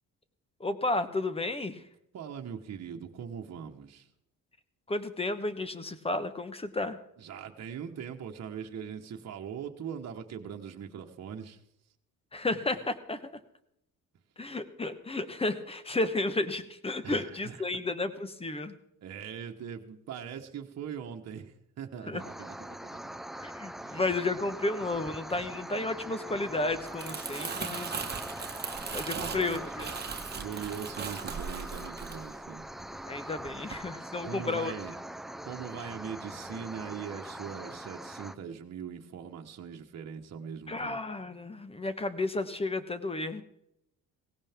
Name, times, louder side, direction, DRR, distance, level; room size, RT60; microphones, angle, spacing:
voice 1, 0.6-1.8 4.9-7.0 12.3-13.2 14.4-18.7 22.1-22.2 23.4-28.0 28.8-29.9 33.1-34.7 40.7-43.4, left 2 dB, 20° left, 12 dB, 1.2 m, -32 dB
voice 2, 2.1-4.1 7.2-11.6 17.0-17.7 19.0-22.9 23.8-24.0 29.1-29.6 30.3-32.7 34.2-34.9 35.4-41.0, right 7 dB, 55° right, 2 dB, 1.4 m, -41 dB
sound 1, 22.2-38.3, right 1 dB, ahead, 0.5 m, -42 dB
Crumpling crinkling, 26.7-33.1 33.4-33.7, right 5 dB, 30° right, 1.6 m, -39 dB
17.5 x 16.0 x 3.6 m, 0.77 s
cardioid pair, 100°, 32 cm